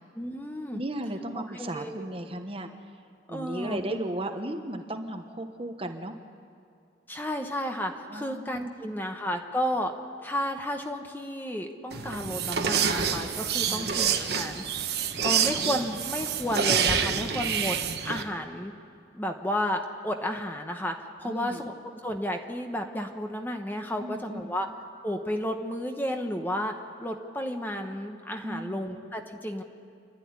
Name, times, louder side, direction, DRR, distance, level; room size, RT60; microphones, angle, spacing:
voice 1, 0.1-0.8 1.5-2.0 3.3-3.8 7.1-9.9 10.2-14.6 15.2-17.8 18.0-18.7 19.1-20.9 21.2-21.7 22.0-24.7 25.0-26.7 27.0-29.6, equal, 10° left, 4 dB, 1.0 m, -32 dB
voice 2, 0.7-2.7 3.3-6.2 8.1-9.0 13.6-13.9 21.2-21.6 24.0-24.5 28.4-28.8, right 1 dB, 30° right, 5 dB, 1.2 m, -35 dB
sound 1, 11.9-18.2, right 7 dB, 60° right, 1.2 m, -27 dB
29.0 x 11.5 x 9.7 m, 2.3 s
head